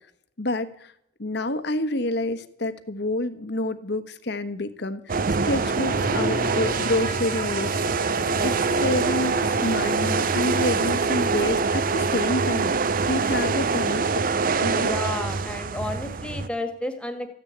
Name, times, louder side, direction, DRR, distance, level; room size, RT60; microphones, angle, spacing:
voice 1, 0.4-0.9 1.2-7.8 8.1-8.5 8.8-14.0 14.6-14.9, left 1 dB, 65° left, 10 dB, 1.3 m, -28 dB
sound 1, 5.1-16.5, right 4 dB, 50° right, 0.6 m, -24 dB
Bowed string instrument, 5.5-10.3, left 3 dB, 25° left, 0.7 m, -37 dB
voice 2, 8.2-8.7 13.3-13.8 14.7-17.3, left 1 dB, 5° left, 7 dB, 1.8 m, -33 dB
14.5 x 9.9 x 8.6 m, 0.72 s
head